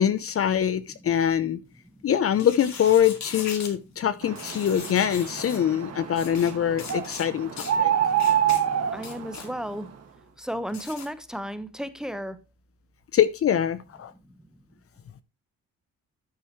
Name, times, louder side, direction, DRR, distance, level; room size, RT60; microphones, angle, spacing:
voice 1, 0.0-1.6 2.0-7.9 13.1-14.1, left 9 dB, 50° left, 0.7 m, -24 dB
sound 1, 2.3-3.7 4.4-5.6 6.1-6.5 6.8-7.3 7.6-7.8 8.2-8.6 9.0-9.5 10.7-11.1, left 6 dB, 65° left, 2.3 m, -39 dB
sound 2, 4.2-9.8, right 9 dB, 55° right, 1.9 m, -27 dB
voice 2, 8.9-9.9 10.4-12.4 14.2-14.5, equal, ahead, 1.1 m, -34 dB
12.5 x 7.0 x 3.1 m
cardioid pair, 90°, 30 cm